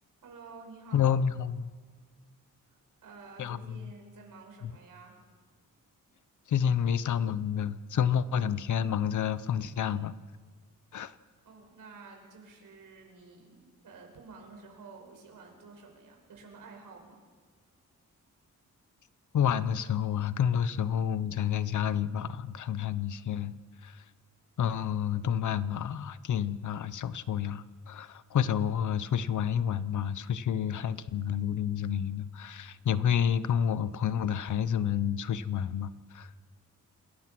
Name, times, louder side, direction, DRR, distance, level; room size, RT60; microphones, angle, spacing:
voice 1, 0.2-1.2 2.7-5.2 11.4-17.2, right 4 dB, 90° right, 1 dB, 5.8 m, -50 dB
voice 2, 0.9-1.7 3.4-3.8 4.6-4.7 6.5-10.1 10.9-11.1 19.3-23.5 23.8-24.0 24.6-36.3, left 8 dB, 65° left, 15 dB, 0.8 m, -29 dB
27.5 x 19.5 x 6.1 m, 1.5 s
wide cardioid pair, 160°, 32 cm